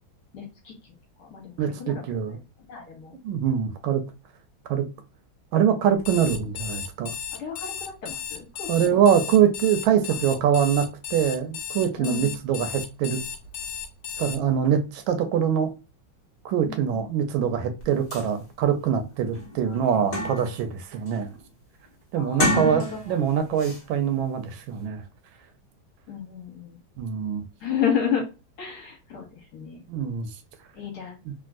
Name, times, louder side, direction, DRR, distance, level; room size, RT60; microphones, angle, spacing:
voice 1, 0.3-0.7 1.2-2.0 2.3-2.4 2.7-3.1 7.4-9.0 10.5-10.6 12.0-12.3 16.7-17.0 19.6-19.8 22.1-23.0 26.1-26.8 27.6-28.2 28.6-29.2 29.5-29.8 30.8-31.2, left 7 dB, 60° left, 1.2 m, -31 dB
voice 2, 1.6-2.4 3.2-4.0 4.7-4.9 5.5-7.1 8.7-13.2 14.2-15.7 16.4-21.3 22.1-25.0 27.0-27.4 29.9-30.3 31.2-31.3, right 8 dB, 80° right, 1.4 m, -24 dB
Alarm, 6.0-14.4, left 7 dB, 90° left, 1.4 m, -35 dB
sound 1, 17.8-17.9 18.1-18.3 18.8-18.9 19.3-20.7 21.1-21.4 22.2-23.2 23.6-23.8, left 1 dB, 45° left, 0.5 m, -29 dB
3.4 x 2.5 x 2.4 m
omnidirectional pair, 2.2 m